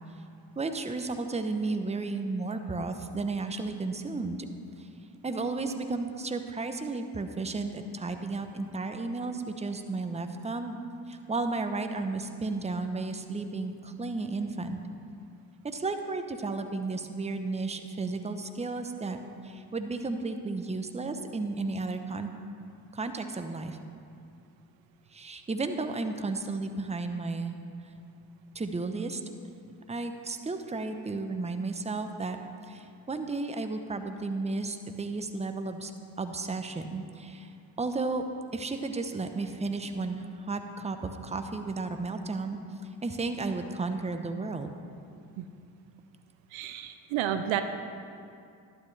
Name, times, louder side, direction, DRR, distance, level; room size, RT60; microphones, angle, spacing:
voice 1, 0.6-4.4 4.8-4.9 5.2-10.8 11.1-14.8 15.6-19.2 19.4-22.3 22.9-23.8 25.1-27.6 28.5-29.2 29.9-32.4 32.6-35.9 36.2-37.5 37.8-38.2 38.5-42.6 43.0-44.7, right 3 dB, 15° right, 7 dB, 0.8 m, -33 dB
voice 2, 46.5-47.6, right 11 dB, 70° right, 9 dB, 0.7 m, -31 dB
11.5 x 10.0 x 3.3 m, 2.5 s
hypercardioid pair, 55°, 48 cm